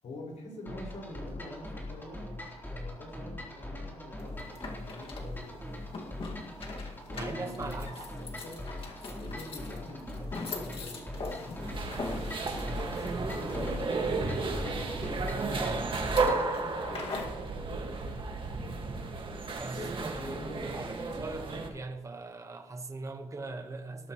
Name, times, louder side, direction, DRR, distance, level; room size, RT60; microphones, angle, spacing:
voice 1, 0.0-2.3 2.7-6.0 7.0-8.6 9.1-12.5 13.3-17.2 17.6-18.8 19.7-21.1, left 1 dB, 75° left, -1 dB, 5.4 m, -46 dB
sound 1, 0.7-16.5, left 1 dB, 15° left, 3.5 m, -41 dB
sound 2, 4.2-17.4, left 3 dB, 50° left, 2.0 m, -43 dB
voice 2, 7.1-7.9 19.6-24.1, right 3 dB, 25° right, 5 dB, 1.2 m, -40 dB
sound 3, 11.6-21.7, right 4 dB, 45° right, 1.8 m, -33 dB
19.0 x 12.0 x 3.1 m, 1.1 s
wide cardioid pair, 140°, 12 cm